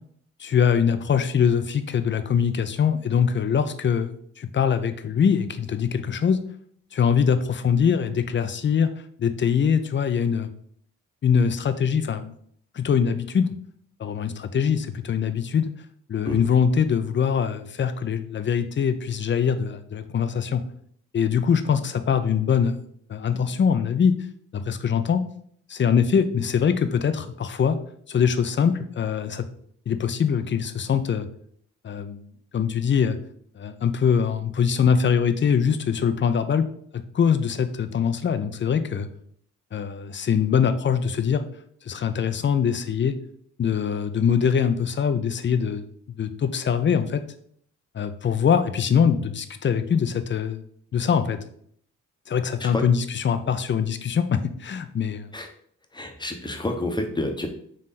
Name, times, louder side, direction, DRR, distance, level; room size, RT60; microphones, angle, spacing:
voice 1, 0.4-6.4 6.9-8.9 9.2-10.5 11.2-12.3 12.7-13.5 14.0-15.7 16.1-20.6 21.1-22.8 23.1-24.1 24.5-25.2 25.7-27.8 28.1-29.5 29.9-31.3 31.8-32.2 32.5-33.2 33.6-36.7 36.9-39.1 39.7-41.4 41.8-43.1 43.6-45.9 46.2-47.2 47.9-50.6 50.9-51.4 52.3-55.3, left 7 dB, 35° left, 10 dB, 0.5 m, -23 dB
voice 2, 55.9-57.5, left 1 dB, 15° left, 5 dB, 0.9 m, -29 dB
3.8 x 3.1 x 4.1 m, 0.64 s
supercardioid pair, 50°, 33 cm